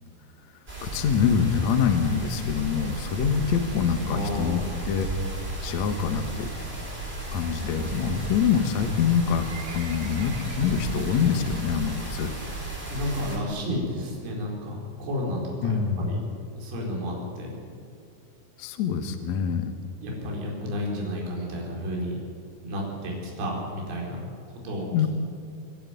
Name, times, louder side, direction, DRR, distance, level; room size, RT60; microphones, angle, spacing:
sound 1, 0.7-13.4, right 2 dB, 15° right, 3.9 m, -34 dB
voice 1, 0.8-4.6 4.8-5.1 5.6-6.5 7.3-9.5 9.7-12.3 15.6-16.2 18.6-19.7 24.9-25.1, left 7 dB, 85° left, 6 dB, 1.5 m, -25 dB
voice 2, 4.1-4.7 12.9-16.2 16.6-17.5 20.0-22.2 22.6-25.1, left 1 dB, 70° right, -2 dB, 6.6 m, -32 dB
Livestock farm animals working animals, 9.4-11.7 12.0-12.3 12.6-12.7 13.4-13.5 13.8-13.9 14.0-14.1 14.7-14.9 15.5-15.6 15.8-15.9 16.1-16.2 16.4-16.5 17.0-17.1 17.6-17.7 18.1-18.2, right 6 dB, 55° right, 2.2 m, -46 dB
25.5 x 11.0 x 9.2 m, 2.3 s
omnidirectional pair, 5.5 m